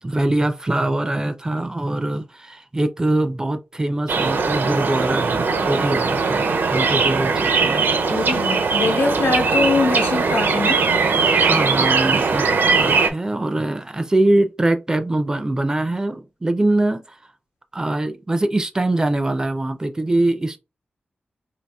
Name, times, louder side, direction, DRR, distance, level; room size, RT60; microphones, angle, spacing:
voice 1, 0.0-7.8 11.2-17.2 17.7-20.6, right 1 dB, 20° right, 0.3 m, -23 dB
sound 1, 4.1-13.1, right 4 dB, 80° right, 0.6 m, -20 dB
voice 2, 8.1-10.8, left 3 dB, 80° left, 1.0 m, -22 dB
4.1 x 2.7 x 2.2 m
wide cardioid pair, 165°, 4 cm